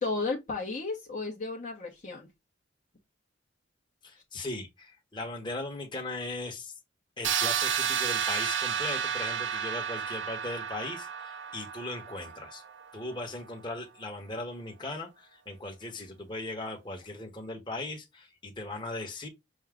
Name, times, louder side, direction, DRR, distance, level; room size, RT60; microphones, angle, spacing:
voice 1, 0.0-2.3, left 3 dB, 40° left, 1.0 m, -33 dB
voice 2, 4.0-6.7 7.2-12.6 12.9-19.3, left 2 dB, 25° left, 1.2 m, -38 dB
sound 1, 7.2-13.0, right 8 dB, 65° right, 0.6 m, -31 dB
6.3 x 2.2 x 3.6 m
head